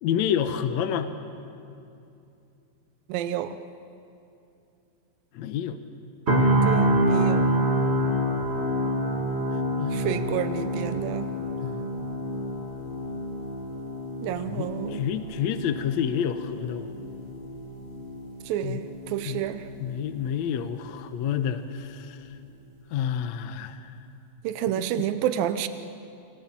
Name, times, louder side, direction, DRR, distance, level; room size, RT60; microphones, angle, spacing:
voice 1, 0.0-1.1 5.3-5.8 9.8-10.3 11.6-11.9 14.4-17.0 18.6-18.9 19.2-19.5 19.8-22.2 22.9-23.9 25.0-25.1, left 8 dB, 70° left, 9 dB, 1.8 m, -29 dB
voice 2, 3.1-3.6 6.7-7.5 9.9-11.3 14.2-15.0 18.5-19.6 24.4-25.7, right 11 dB, 80° right, 10 dB, 2.5 m, -29 dB
sound 1, 6.3-20.3 20.6-20.8, right 1 dB, 25° right, 1.8 m, -27 dB
30.0 x 22.5 x 7.4 m, 2.7 s
omnidirectional pair, 4.1 m